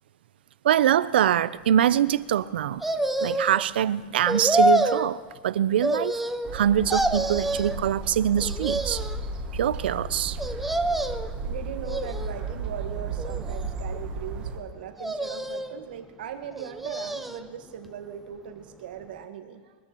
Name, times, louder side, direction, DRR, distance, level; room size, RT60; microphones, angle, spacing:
voice 1, 0.6-2.8 3.2-6.1 6.5-9.0 9.5-10.4, right 10 dB, 80° right, 17 dB, 0.5 m, -23 dB
sound 1, 2.8-3.6 4.3-5.1 5.8-6.6 6.9-7.8 8.4-9.2 10.4-11.3 11.8-12.5 13.2-14.0 15.0-15.8 16.5-17.5 17.8-17.9, right 1 dB, ahead, 0.4 m, -27 dB
sound 2, 6.4-14.6, right 3 dB, 20° right, 0.9 m, -34 dB
voice 2, 11.4-19.8, right 8 dB, 60° right, 6 dB, 1.4 m, -39 dB
22.5 x 13.0 x 3.0 m, 1.4 s
supercardioid pair, 175°, 5 cm